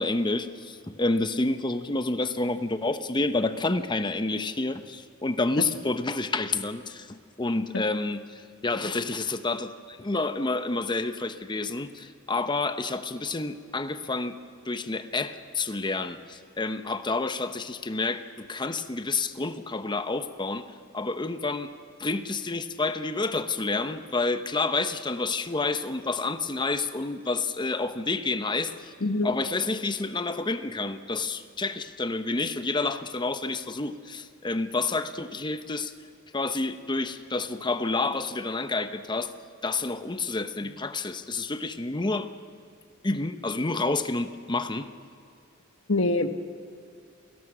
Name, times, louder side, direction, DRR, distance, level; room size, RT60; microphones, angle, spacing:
voice 1, 0.0-14.4 14.6-21.7 22.0-28.9 29.2-35.9 36.3-39.3 39.6-42.3 43.0-44.9, left 3 dB, 20° left, 10 dB, 0.9 m, -29 dB
voice 2, 45.9-46.3, left 2 dB, 70° left, 8 dB, 1.3 m, -24 dB
29.0 x 17.5 x 6.2 m, 2.3 s
head